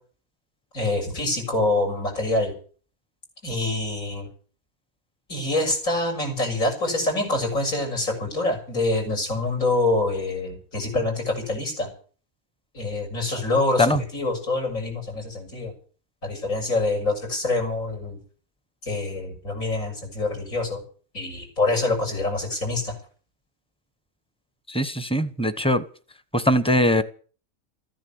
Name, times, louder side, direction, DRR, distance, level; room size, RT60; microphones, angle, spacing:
voice 1, 0.7-2.5 3.4-4.3 5.3-11.9 12.7-15.7 16.2-18.2 18.8-20.8 21.1-22.9, left 2 dB, 75° left, 7.0 m, -25 dB
voice 2, 24.7-25.8 26.3-27.0, left 1 dB, 5° left, 1.0 m, -21 dB
15.0 x 10.0 x 9.5 m
omnidirectional pair, 1.4 m